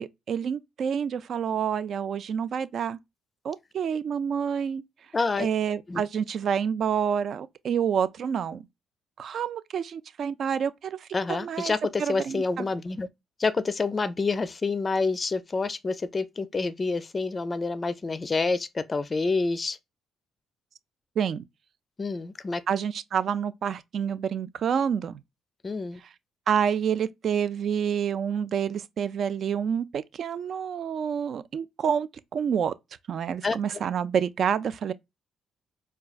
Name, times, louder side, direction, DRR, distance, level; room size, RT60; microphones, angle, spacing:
voice 1, 0.0-3.0 3.4-4.8 5.4-8.6 9.2-11.7 12.0-12.7 21.2-21.4 22.7-25.2 26.5-32.7 33.1-34.9, right 7 dB, 60° right, 0.3 m, -28 dB
voice 2, 5.1-5.5 5.9-6.0 11.1-13.1 13.4-19.8 22.0-22.6 25.6-26.0 33.4-33.6, left 3 dB, 30° left, 0.4 m, -28 dB
4.5 x 2.2 x 2.4 m
cardioid pair, 90°, 0 cm